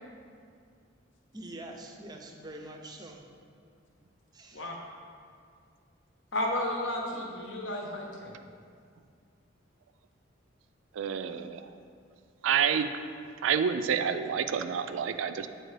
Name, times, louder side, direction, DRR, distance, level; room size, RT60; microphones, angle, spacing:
voice 1, 1.3-3.3 4.3-4.6, right 1 dB, 20° right, 3 dB, 0.4 m, -44 dB
voice 2, 6.3-8.3, left 1 dB, 75° left, 0 dB, 0.9 m, -32 dB
voice 3, 10.9-11.7 12.4-12.9 13.4-15.5, right 7 dB, 85° right, 10 dB, 0.3 m, -28 dB
7.7 x 4.4 x 3.2 m, 2.2 s
head